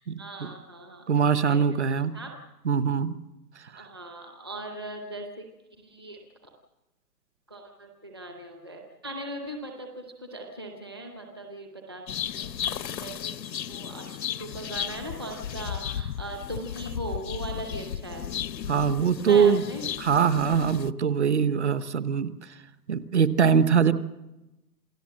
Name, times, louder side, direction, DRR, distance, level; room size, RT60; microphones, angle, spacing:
voice 1, 0.2-1.6 1.9-2.3 3.8-5.5 5.8-6.2 7.5-12.0 12.3-18.2 19.1-19.8, right 1 dB, 15° right, 2 dB, 0.7 m, -39 dB
voice 2, 1.1-2.2 2.6-3.2 3.7-3.9 18.7-19.6 20.0-22.3 22.9-23.9, right 6 dB, 45° right, 13 dB, 1.0 m, -22 dB
sound 1, 12.1-20.9, left 9 dB, 85° left, 1.0 m, -35 dB
27.5 x 17.0 x 7.5 m, 1.0 s
hypercardioid pair, 180°, 49 cm